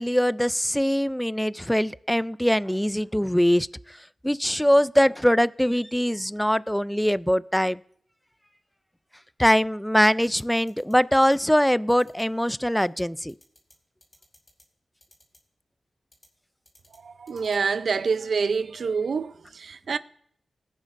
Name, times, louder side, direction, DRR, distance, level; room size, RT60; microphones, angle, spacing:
voice 1, 0.0-3.7 4.2-7.8 9.4-13.3, equal, 5° left, 0.3 m, -22 dB
sound 1, 10.2-10.9 11.2-11.3 11.9-12.2 12.8-13.0 13.3-13.7 14.0-14.6 15.0-15.4 16.1-16.3 16.6-17.0 17.3-17.5, left 1 dB, 30° left, 3.7 m, -56 dB
voice 2, 17.0-20.0, right 5 dB, 75° right, 0.5 m, -27 dB
20.5 x 9.1 x 2.5 m
cardioid pair, 70°, 0 cm